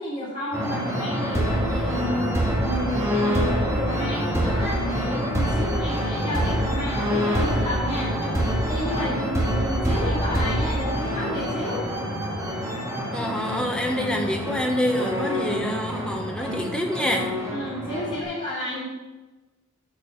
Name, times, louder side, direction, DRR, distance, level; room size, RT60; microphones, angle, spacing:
voice 1, 0.0-11.9 15.3-15.6 17.5-18.8, equal, 35° left, -11 dB, 2.9 m, -31 dB
sound 1, 0.5-18.2, equal, 15° right, 1.7 m, -26 dB
voice 2, 13.1-17.3, equal, 5° left, 1 dB, 1.1 m, -26 dB
9.0 x 4.9 x 7.0 m, 1.2 s
head